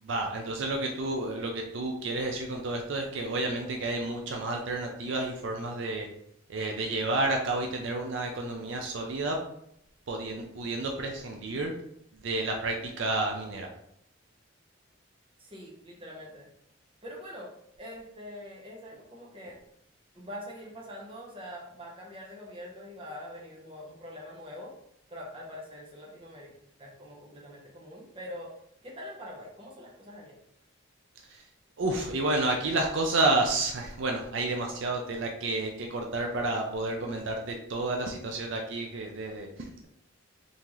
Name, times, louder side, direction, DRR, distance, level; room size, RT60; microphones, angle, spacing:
voice 1, 0.0-6.1 6.5-9.4 10.1-11.7 12.2-13.7 31.3-31.4 31.8-39.9, right 2 dB, 65° right, 2 dB, 0.5 m, -30 dB
voice 2, 15.4-16.5 17.0-19.6 20.1-24.8 25.1-26.5 26.8-28.5 28.8-30.4, left 1 dB, 25° right, -3 dB, 0.8 m, -44 dB
3.7 x 2.8 x 3.0 m, 0.74 s
head